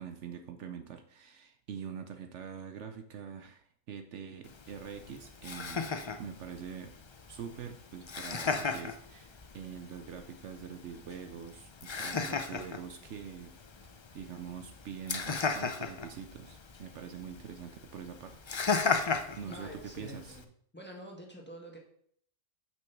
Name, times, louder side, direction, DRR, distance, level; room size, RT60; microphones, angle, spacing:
voice 1, 0.0-5.9 6.2-6.9 7.3-13.5 14.1-19.0 19.4-20.4, right 7 dB, 70° right, 8 dB, 0.9 m, -44 dB
Laughter, 4.4-20.4, left 4 dB, 50° left, 0.3 m, -37 dB
voice 2, 19.4-20.5 20.7-21.8, equal, 10° left, 0 dB, 1.5 m, -47 dB
6.2 x 6.1 x 5.9 m, 0.65 s
omnidirectional pair, 1.3 m